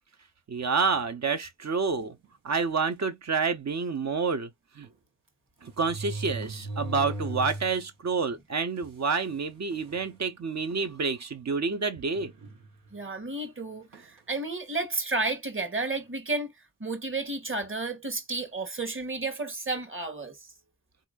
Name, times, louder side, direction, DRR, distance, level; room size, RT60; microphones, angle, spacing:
voice 1, 0.5-2.2 2.4-4.5 4.8-4.9 5.6-12.3, right 4 dB, 60° right, 0.8 m, -28 dB
sound 1, 2.0-2.3 3.0-3.1 3.4-3.5 4.8-4.9 5.6-7.9 8.3-8.4 9.2-9.3 9.7-10.1 10.7-10.9 12.1-13.0 13.9-14.2, right 2 dB, 90° right, 1.3 m, -38 dB
voice 2, 12.9-16.5 16.8-20.4, right 3 dB, 40° right, 1.4 m, -32 dB
3.6 x 2.9 x 2.4 m
cardioid pair, 40°, 31 cm